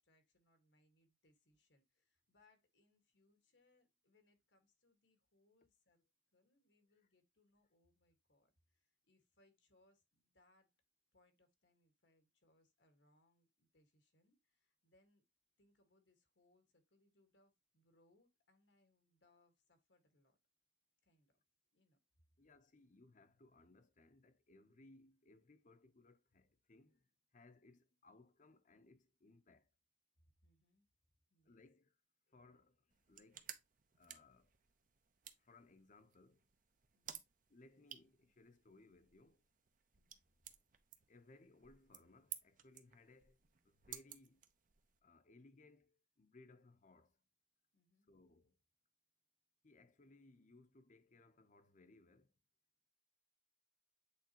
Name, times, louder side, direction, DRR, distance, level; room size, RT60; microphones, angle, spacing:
voice 1, 0.0-10.7 11.1-15.2 15.6-20.4 21.0-21.4 21.7-22.0 30.4-30.9 31.3-31.7 36.9-37.2 39.9-40.2 47.7-48.1, left 2 dB, 85° left, 1.7 m, -76 dB
voice 2, 22.4-27.0 27.3-29.7 31.5-31.9 32.3-33.5 33.9-34.5 35.4-36.4 37.5-39.4 41.1-43.4 43.6-44.4 45.0-47.2 48.1-48.6 49.6-52.3, left 2 dB, 45° left, 0.8 m, -65 dB
sound 1, 32.9-45.0, right 10 dB, 50° right, 0.7 m, -57 dB
8.4 x 3.9 x 2.9 m
head